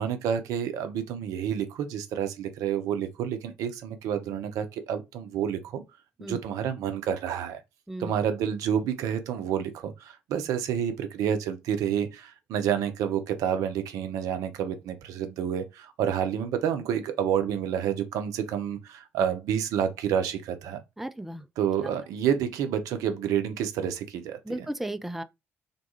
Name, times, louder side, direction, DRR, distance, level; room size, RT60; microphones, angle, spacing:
voice 1, 0.0-5.8 6.2-7.6 8.0-20.8 21.6-24.4, right 8 dB, 60° right, 0.5 m, -29 dB
voice 2, 21.0-21.5 24.4-25.2, right 1 dB, 5° right, 0.3 m, -34 dB
2.6 x 2.3 x 2.8 m
figure-of-eight pair, 45°, 6 cm